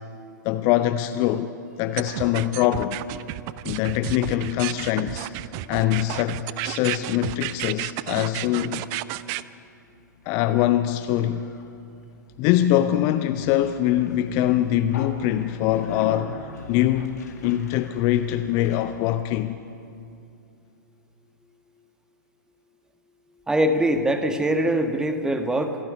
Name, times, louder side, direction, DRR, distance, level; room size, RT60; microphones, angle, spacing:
voice 1, 0.4-1.5 1.8-3.0 3.6-5.3 5.7-8.8 10.3-11.5 12.4-16.4 16.7-19.6, left 13 dB, 30° left, 0.6 m, -23 dB
sound 1, 2.0-9.4, right 17 dB, 30° right, 0.5 m, -31 dB
Conversation, 9.8-19.3, left 5 dB, 55° left, 2.3 m, -42 dB
voice 2, 23.5-25.8, right 1 dB, 5° right, 1.5 m, -22 dB
26.5 x 9.9 x 10.0 m
figure-of-eight pair, 110°, 11 cm